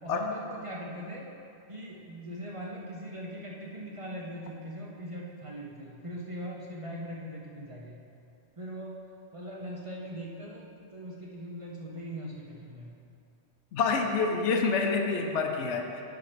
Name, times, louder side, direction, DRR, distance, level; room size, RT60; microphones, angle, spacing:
voice 1, 0.0-1.3 1.7-8.0 8.6-9.0 9.3-12.9, equal, 35° right, -4 dB, 0.7 m, -40 dB
voice 2, 13.7-16.0, left 4 dB, 75° left, 3 dB, 1.0 m, -27 dB
9.3 x 4.3 x 5.1 m, 2.6 s
omnidirectional pair, 1.2 m